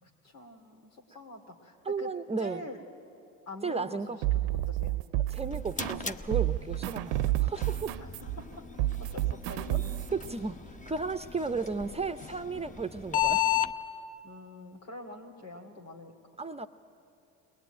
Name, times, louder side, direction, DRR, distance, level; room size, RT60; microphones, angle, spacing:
voice 1, 0.0-2.1 2.4-2.8 3.5-4.0 4.3-5.0 5.4-5.6 7.1-7.3 8.0-8.6 9.0-9.9 11.5-11.7 14.2-16.1, left 2 dB, 85° left, 0 dB, 2.8 m, -45 dB
voice 2, 1.9-2.6 3.6-4.2 5.3-7.2 7.5-8.0 9.7-9.8 10.1-13.5 16.4-16.7, right 4 dB, 15° right, 10 dB, 0.6 m, -34 dB
sound 1, 4.2-6.1 6.3-10.3, right 15 dB, 70° right, 0.7 m, -30 dB
sound 2, 5.2-13.7, left 11 dB, 20° left, 0.9 m, -35 dB
21.0 x 20.0 x 9.0 m, 2.7 s
hypercardioid pair, 70°, 39 cm